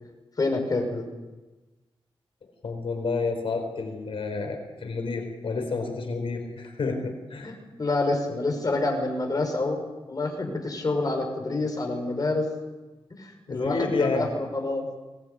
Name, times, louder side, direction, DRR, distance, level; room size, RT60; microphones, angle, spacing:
voice 1, 0.4-1.0 7.4-9.8 10.1-12.5 13.2-14.3 14.5-14.8, left 2 dB, 40° left, 3 dB, 6.0 m, -27 dB
voice 2, 2.6-7.6 13.5-14.3, left 4 dB, 75° left, 5 dB, 4.2 m, -30 dB
23.5 x 19.5 x 9.4 m, 1.2 s
wide cardioid pair, 150°, 10 cm